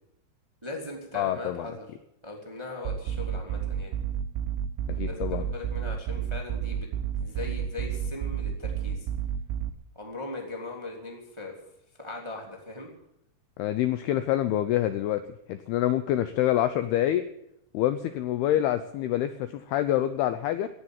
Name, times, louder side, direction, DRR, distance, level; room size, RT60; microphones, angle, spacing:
voice 1, 0.6-1.8 2.2-3.9 5.1-6.9 7.2-9.1 9.9-11.5 12.0-12.9, left 2 dB, 10° right, 1 dB, 1.2 m, -39 dB
voice 2, 1.1-1.7 4.9-5.5 13.6-15.2 15.5-17.2 17.7-20.7, left 12 dB, 90° left, 11 dB, 2.2 m, -26 dB
sound 1, 2.9-9.7, right 8 dB, 80° right, 3.0 m, -31 dB
17.5 x 8.2 x 9.0 m, 0.79 s
omnidirectional pair, 5.4 m